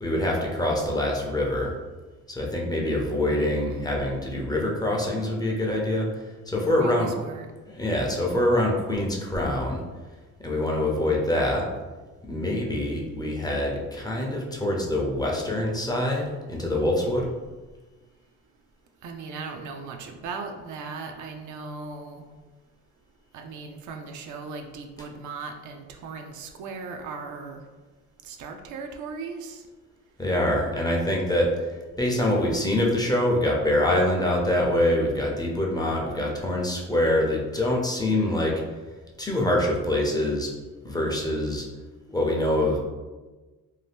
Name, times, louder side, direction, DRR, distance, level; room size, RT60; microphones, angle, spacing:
voice 1, 0.0-1.7 2.3-7.1 7.6-9.8 10.4-11.7 12.3-17.3 30.2-38.6 39.2-40.5 40.8-41.6 42.1-42.8, left 1 dB, 15° left, -2 dB, 0.6 m, -25 dB
voice 2, 3.3-3.9 6.8-7.5 19.0-22.2 23.3-27.6 28.2-29.6, right 4 dB, 75° right, 4 dB, 0.5 m, -38 dB
2.7 x 2.1 x 3.4 m, 1.3 s
cardioid pair, 90°, 30 cm